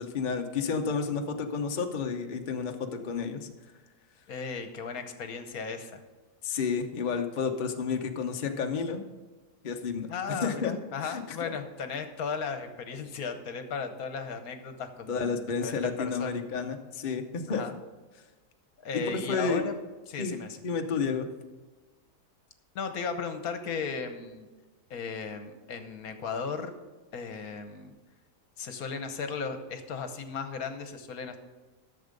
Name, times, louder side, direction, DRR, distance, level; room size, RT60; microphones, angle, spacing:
voice 1, 0.0-3.5 6.4-9.0 9.6-10.7 11.0-11.2 15.1-17.6 19.1-19.6 20.2-20.4 20.6-21.3, left 5 dB, 45° left, 4 dB, 0.6 m, -31 dB
voice 2, 4.3-6.0 10.1-16.4 17.5-17.7 18.8-19.8 20.1-20.6 22.7-24.5 24.9-26.7 27.1-28.0 28.6-31.4, left 5 dB, 60° left, 8 dB, 1.3 m, -36 dB
11.5 x 7.2 x 5.2 m, 1.2 s
omnidirectional pair, 1.8 m